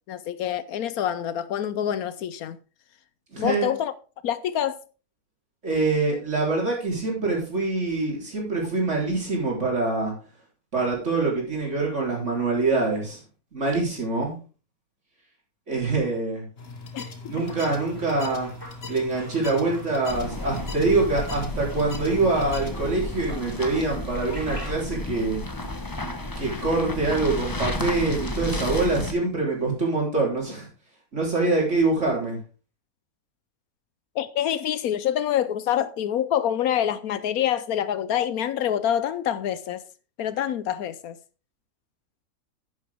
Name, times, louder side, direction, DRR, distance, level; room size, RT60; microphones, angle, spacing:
voice 1, 0.1-2.6 3.4-3.9 4.2-4.8 16.9-17.3 34.1-39.8 40.2-41.2, left 10 dB, 75° left, 1.1 m, -26 dB
voice 2, 3.3-3.7 5.6-10.1 10.7-13.2 13.5-14.3 15.7-16.5 17.3-18.5 18.9-25.4 26.4-30.7 31.1-32.4, right 3 dB, 50° right, 4.1 m, -25 dB
sound 1, 16.6-22.9, left 3 dB, 40° left, 1.6 m, -40 dB
sound 2, 17.4-24.7, right 1 dB, 10° right, 4.9 m, -45 dB
sound 3, 20.1-29.1, left 1 dB, 15° left, 1.0 m, -32 dB
10.0 x 9.6 x 3.5 m
omnidirectional pair, 1.6 m